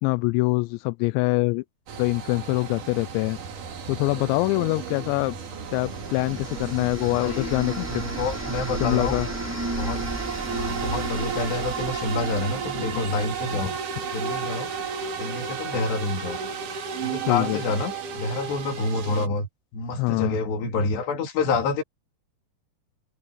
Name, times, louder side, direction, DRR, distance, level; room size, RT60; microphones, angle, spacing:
voice 1, 0.0-1.6 2.0-3.4 3.9-5.4 5.7-8.0 8.8-9.3 17.2-17.6 20.0-20.4, left 24 dB, 85° left, 2.8 m, -24 dB
sound 1, 1.9-19.3, right 6 dB, 50° right, 3.5 m, -33 dB
sound 2, 5.4-13.4, right 1 dB, 5° right, 3.6 m, -35 dB
voice 2, 7.2-7.5 7.9-9.2 9.7-10.1 10.5-13.7 14.1-14.7 15.2-16.4 17.0-21.8, left 3 dB, 65° left, 5.1 m, -28 dB
omnidirectional pair, 5.2 m